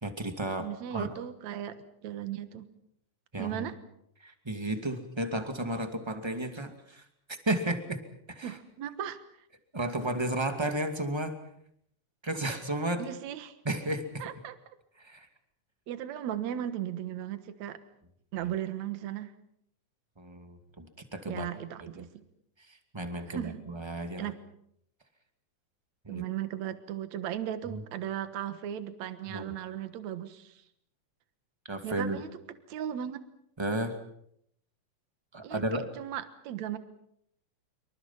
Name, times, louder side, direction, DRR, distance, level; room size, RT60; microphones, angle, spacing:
voice 1, 0.0-1.1 3.3-3.7 4.2-8.0 8.3-8.6 9.7-11.4 12.2-13.0 13.6-14.3 15.0-15.3 18.4-18.5 20.2-21.5 21.8-22.1 22.6-24.3 26.0-26.2 27.7-27.8 29.3-29.5 31.6-32.2 33.6-34.0 35.3-35.9, right 1 dB, 10° right, 6 dB, 1.9 m, -33 dB
voice 2, 0.6-1.7 2.0-2.7 3.4-3.7 8.4-9.2 13.0-13.5 14.2-14.6 15.9-17.8 18.3-19.3 21.3-22.1 23.3-23.6 24.2-24.4 26.1-30.6 31.8-32.3 32.7-33.2 35.4-35.6 36.0-36.8, right 11 dB, 65° right, 11 dB, 2.6 m, -36 dB
26.5 x 25.0 x 5.8 m, 0.72 s
omnidirectional pair, 3.6 m